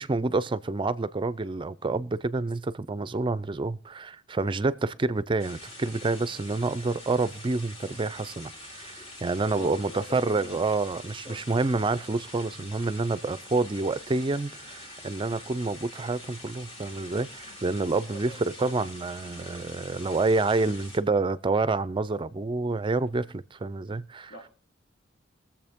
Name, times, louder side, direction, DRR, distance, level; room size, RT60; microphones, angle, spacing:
voice 1, 0.0-24.3, right 3 dB, 25° right, 0.4 m, -28 dB
sound 1, 5.4-21.0, left 1 dB, 35° left, 2.4 m, -45 dB
voice 2, 9.4-10.9 11.3-11.5 18.1-18.5 24.3-24.5, left 1 dB, 70° left, 1.7 m, -44 dB
21.5 x 7.3 x 3.6 m
head